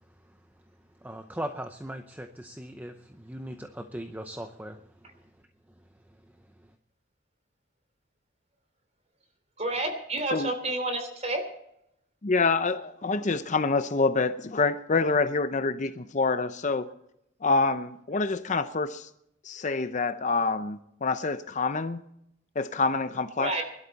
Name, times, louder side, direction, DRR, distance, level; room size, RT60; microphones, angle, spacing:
voice 1, 1.0-4.8, right 1 dB, 10° right, 0.7 m, -38 dB
voice 2, 9.6-11.4 23.4-23.6, right 2 dB, 35° right, 3.1 m, -29 dB
voice 3, 12.2-16.9 17.4-19.1 19.4-22.0 22.6-23.6, left 3 dB, 35° left, 0.6 m, -26 dB
22.0 x 12.0 x 4.1 m
head